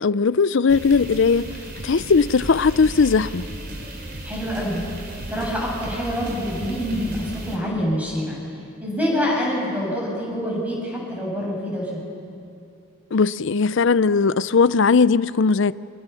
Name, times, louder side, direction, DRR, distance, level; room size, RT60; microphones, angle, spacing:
voice 1, 0.0-1.5 1.8-3.5 13.1-15.7, left 5 dB, 60° left, 0.5 m, -18 dB
sound 1, 0.7-7.6, right 1 dB, 45° right, 4.0 m, -35 dB
voice 2, 4.2-4.8 5.3-7.2 7.4-8.4 8.8-12.0, equal, 5° right, 7.4 m, -26 dB
29.0 x 25.0 x 7.0 m
head